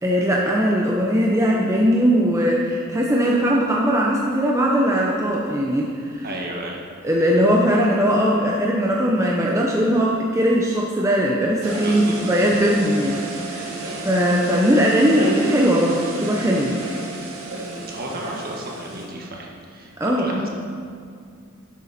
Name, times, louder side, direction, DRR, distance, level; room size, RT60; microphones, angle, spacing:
voice 1, 0.0-6.3 7.0-13.7 14.0-16.8 20.0-20.5, equal, 15° right, -3 dB, 0.7 m, -19 dB
voice 2, 6.2-6.8 11.7-12.4 13.6-14.1 17.6-20.5, right 1 dB, 45° right, -1 dB, 1.6 m, -34 dB
sound 1, 11.6-19.1, right 2 dB, 90° right, 1.6 m, -32 dB
11.0 x 8.3 x 4.3 m, 2.2 s
head